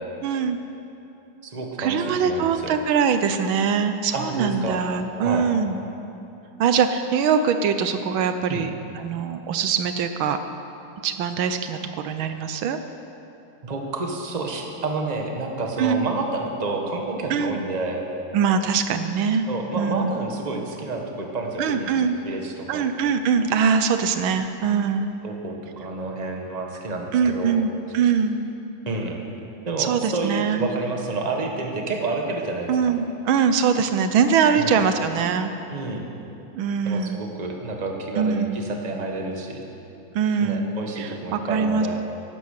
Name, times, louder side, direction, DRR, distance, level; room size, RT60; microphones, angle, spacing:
voice 1, 0.2-0.6 1.8-5.8 6.6-10.4 11.0-11.8 12.0-12.8 15.8-16.1 17.3-17.6 18.3-19.5 19.8-20.2 21.6-22.2 22.7-25.1 27.1-28.4 29.8-30.7 32.7-35.5 36.5-37.2 38.2-38.6 40.1-40.7 41.0-41.9, right 6 dB, 80° right, 9 dB, 1.5 m, -22 dB
voice 2, 1.4-2.7 4.1-4.8 5.2-5.5 8.5-8.7 13.6-18.1 19.5-21.9 22.2-22.9 25.2-27.6 28.9-29.2 29.6-32.9 34.5-34.8 35.7-36.1 36.8-39.6 40.4-42.0, right 3 dB, 20° right, 2 dB, 1.3 m, -29 dB
15.5 x 11.5 x 6.6 m, 2.8 s
omnidirectional pair, 2.2 m